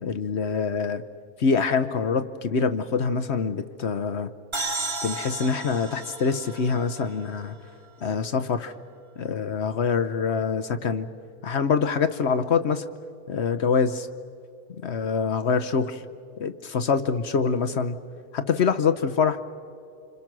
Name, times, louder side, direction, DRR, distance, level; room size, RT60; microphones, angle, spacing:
voice 1, 0.0-1.0 1.4-4.3 5.0-7.5 8.0-8.7 9.2-11.1 11.4-12.8 13.3-14.1 14.8-16.0 16.4-18.0 18.3-19.4, left 5 dB, 55° left, 10 dB, 0.9 m, -25 dB
sound 1, 4.5-8.1, right 2 dB, 20° right, 0.9 m, -34 dB
30.0 x 26.5 x 6.1 m, 2.5 s
omnidirectional pair, 1.6 m